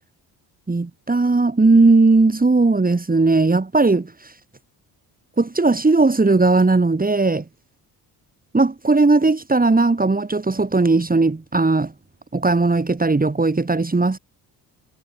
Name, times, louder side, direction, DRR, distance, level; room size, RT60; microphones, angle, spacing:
voice 1, 0.7-4.3 5.4-7.4 8.5-11.9 12.3-14.2, right 3 dB, 20° right, 4.0 m, -17 dB
cardioid pair, 75°, 43 cm